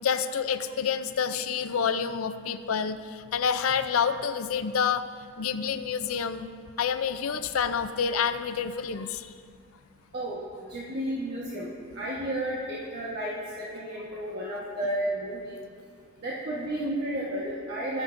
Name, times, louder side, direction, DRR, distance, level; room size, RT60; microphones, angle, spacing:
voice 1, 0.0-5.0 5.4-6.5 6.8-9.3, left 7 dB, 90° left, 11 dB, 0.5 m, -28 dB
voice 2, 10.7-15.5 16.2-18.0, right 1 dB, 50° right, -6 dB, 1.3 m, -32 dB
21.0 x 7.3 x 2.6 m, 2.1 s
head